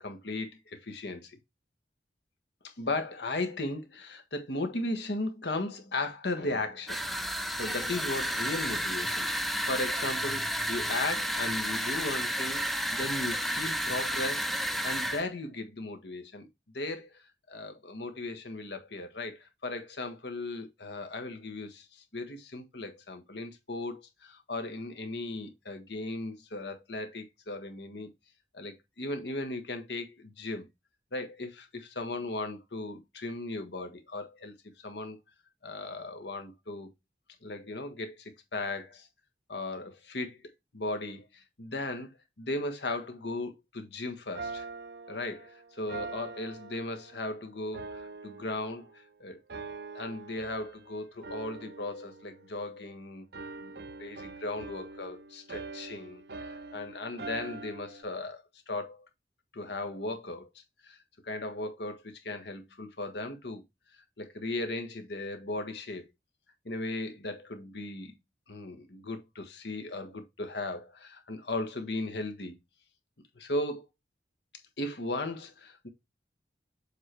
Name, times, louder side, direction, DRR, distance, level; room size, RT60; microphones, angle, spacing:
voice 1, 0.0-1.4 2.6-7.0 7.3-16.5 16.7-17.2 17.5-28.1 28.5-30.7 31.1-34.5 34.8-35.2 35.6-36.9 37.4-39.1 39.5-40.4 40.7-42.1 42.4-44.6 45.1-49.4 49.9-53.2 53.6-53.7 54.0-59.0 59.5-60.5 60.8-63.6 64.2-66.0 66.6-68.2 68.5-72.6 73.3-73.8 74.8-75.9, left 2 dB, 75° left, 1.4 m, -37 dB
sound 1, 6.9-15.2, equal, ahead, 0.5 m, -31 dB
sound 2, 44.3-47.3 47.7-49.1 49.5-50.9 51.2-52.9 53.3-58.0, right 3 dB, 65° right, 0.7 m, -44 dB
7.4 x 3.4 x 4.4 m
head